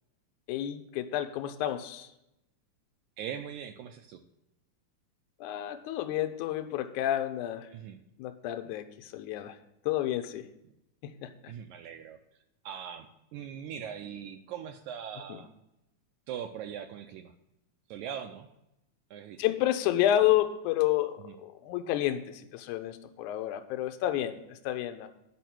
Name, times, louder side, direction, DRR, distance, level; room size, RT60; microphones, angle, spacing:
voice 1, 0.5-2.1 5.4-7.7 8.2-9.6 9.9-10.5 11.0-11.5 15.3-15.4 19.4-25.1, left 12 dB, 80° left, 9 dB, 2.0 m, -30 dB
voice 2, 3.2-4.2 7.7-8.0 11.5-12.2 12.7-15.5 16.3-17.3 17.9-18.5 19.1-19.4, right 8 dB, 80° right, 6 dB, 1.8 m, -40 dB
9.2 x 5.7 x 5.9 m, 0.86 s
omnidirectional pair, 3.7 m